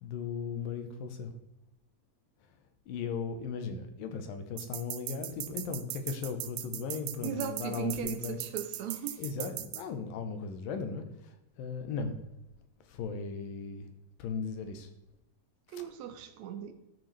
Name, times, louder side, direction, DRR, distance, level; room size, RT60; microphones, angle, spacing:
voice 1, 0.0-1.3 2.5-2.6 2.9-8.4 9.2-12.2 12.9-13.9 14.2-14.9 15.7-15.8, left 5 dB, 90° left, 7 dB, 2.8 m, -37 dB
sound 1, 4.6-9.8, right 13 dB, 85° right, 2.3 m, -39 dB
voice 2, 7.2-9.5 15.7-16.7, right 9 dB, 70° right, 8 dB, 1.9 m, -38 dB
13.5 x 6.5 x 3.3 m, 0.92 s
omnidirectional pair, 3.9 m